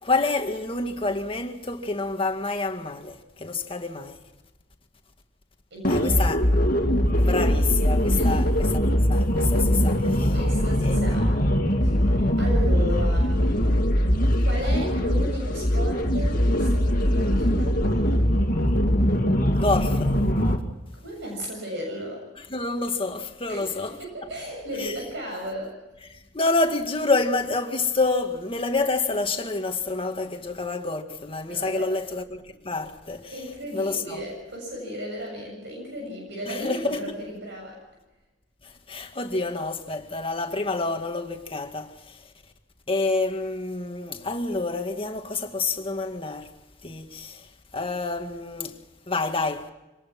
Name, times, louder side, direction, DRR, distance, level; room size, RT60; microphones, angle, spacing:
voice 1, 0.0-4.2 5.9-6.4 7.2-10.3 10.8-11.2 19.5-20.2 22.5-24.0 24.8-24.9 26.3-33.4 33.7-34.2 36.5-37.1 38.6-42.3 42.9-46.5 46.8-47.5 47.7-48.8 49.1-49.7, left 3 dB, 30° left, 2.0 m, -28 dB
voice 2, 5.7-6.2 8.1-8.5 10.3-11.2 11.8-13.3 14.4-18.0 20.9-22.2 23.5-25.7 31.5-31.9 33.3-37.8, equal, 65° right, 7.6 m, -35 dB
sound 1, 5.8-20.6, equal, 50° left, 2.2 m, -21 dB
26.0 x 19.5 x 6.0 m
head